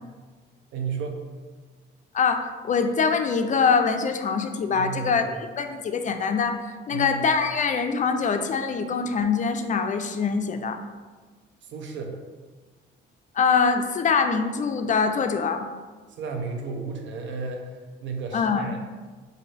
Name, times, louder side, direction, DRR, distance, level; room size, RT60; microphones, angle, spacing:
voice 1, 0.7-1.2 4.7-5.3 6.9-7.2 11.7-12.2 16.2-18.8, right 5 dB, 70° right, 3 dB, 0.7 m, -33 dB
voice 2, 2.1-6.6 6.9-10.8 13.4-15.7 18.3-18.7, left 5 dB, 40° left, 7 dB, 0.4 m, -24 dB
5.2 x 2.6 x 3.3 m, 1.4 s
cardioid pair, 90°, 20 cm